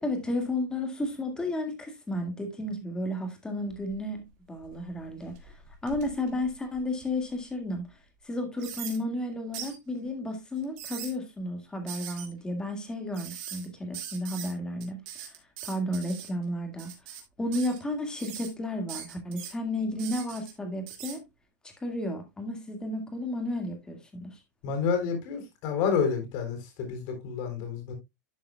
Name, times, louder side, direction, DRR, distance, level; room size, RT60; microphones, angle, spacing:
voice 1, 0.0-5.5 5.8-7.9 8.2-15.3 15.6-16.9 17.4-21.2 21.8-24.4, left 1 dB, 10° left, 1.9 m, -33 dB
sound 1, 3.7-4.2 4.6-7.3 7.8-7.9 8.6-9.0 9.5-9.8 10.6-11.1 11.9-12.3 13.1-13.7 13.9-14.5 14.8-16.3 16.8-17.2 17.5-17.8 18.2-18.5 18.9-19.5 20.0-20.5 20.9-21.2, right 9 dB, 45° right, 2.6 m, -41 dB
voice 2, 24.6-27.9, left 6 dB, 45° left, 3.6 m, -29 dB
11.5 x 7.3 x 2.3 m
supercardioid pair, 165°, 10 cm